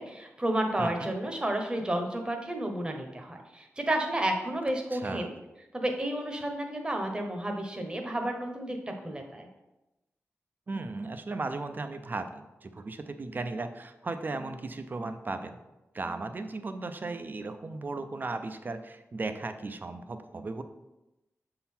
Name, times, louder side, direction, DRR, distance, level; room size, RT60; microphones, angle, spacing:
voice 1, 0.0-5.3 5.7-9.5, right 1 dB, 20° right, 3 dB, 0.9 m, -31 dB
voice 2, 4.9-5.3 10.7-15.6 15.9-20.6, right 3 dB, 40° right, 9 dB, 0.5 m, -36 dB
6.9 x 3.8 x 4.3 m, 0.99 s
wide cardioid pair, 100°, 5 cm